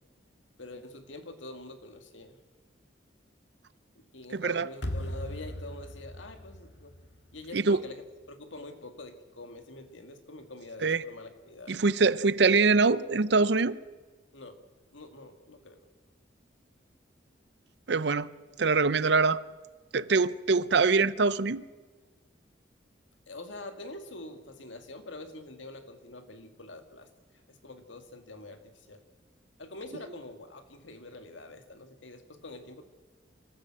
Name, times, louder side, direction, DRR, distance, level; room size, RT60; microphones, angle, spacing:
voice 1, 0.6-2.4 4.0-7.0 7.3-11.8 14.3-14.6 14.9-15.8 23.3-27.1 27.5-29.0 29.6-32.8, left 2 dB, 90° left, 2.0 m, -45 dB
voice 2, 4.3-4.7 7.5-7.8 10.8-11.0 11.7-13.8 17.9-18.3 18.6-19.4 19.9-21.6, right 4 dB, 65° right, 0.6 m, -24 dB
sound 1, 4.8-7.9, equal, 65° left, 1.9 m, -39 dB
25.5 x 14.5 x 7.5 m
head